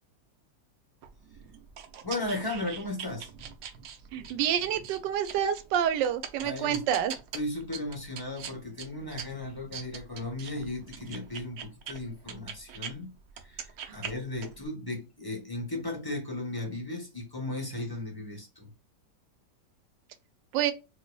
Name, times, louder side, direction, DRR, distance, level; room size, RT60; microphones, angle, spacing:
sound 1, 1.0-12.9 13.3-14.7, right 8 dB, 65° right, 1.0 m, -43 dB
voice 1, 2.0-3.3 6.4-6.8 7.3-13.1 13.4-18.7, left 2 dB, 25° left, 0.4 m, -36 dB
voice 2, 4.1-7.1 13.8-14.0 20.5-20.7, right 9 dB, 85° right, 1.2 m, -28 dB
4.5 x 2.6 x 2.2 m
omnidirectional pair, 1.9 m